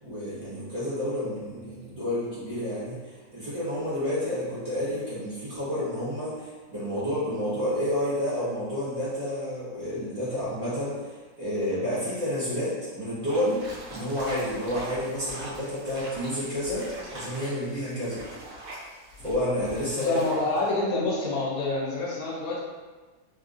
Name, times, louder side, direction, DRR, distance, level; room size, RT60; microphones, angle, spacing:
voice 1, 0.0-3.0 3.3-11.0 11.4-13.6 13.9-18.2 19.2-20.1, equal, 35° right, -12 dB, 1.3 m, -30 dB
sound 1, 13.2-20.7, right 1 dB, 70° right, 1.3 m, -43 dB
voice 2, 20.0-22.6, left 2 dB, 75° left, -4 dB, 1.1 m, -27 dB
3.4 x 2.8 x 2.4 m, 1.3 s
omnidirectional pair, 1.5 m